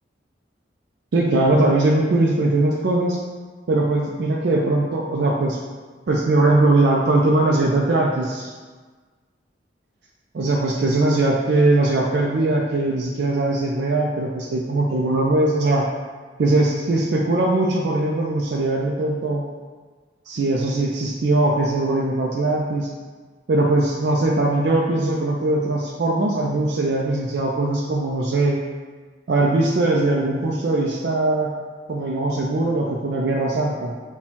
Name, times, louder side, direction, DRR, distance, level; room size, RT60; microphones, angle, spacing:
voice 1, 1.1-3.2 3.7-5.6 6.1-8.5 10.3-15.8 16.4-19.4 20.3-22.9 23.5-28.6 29.3-31.5 31.9-33.9, right 2 dB, 65° right, -2 dB, 0.4 m, -20 dB
4.2 x 2.2 x 4.4 m, 1.4 s
head